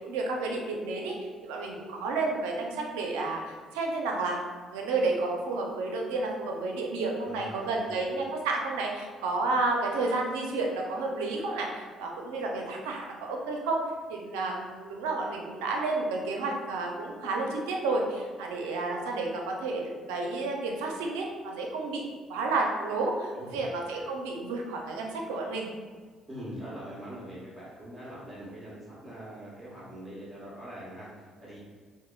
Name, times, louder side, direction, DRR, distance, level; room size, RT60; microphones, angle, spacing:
voice 1, 0.0-4.4 4.7-13.8 14.1-22.0 22.3-25.7, right 3 dB, 85° right, 1 dB, 0.5 m, -31 dB
voice 2, 7.2-7.9 23.4-23.6 26.3-31.6, right 1 dB, 10° right, -8 dB, 1.3 m, -43 dB
4.8 x 2.1 x 2.3 m, 1.5 s
hypercardioid pair, 60°, 0 cm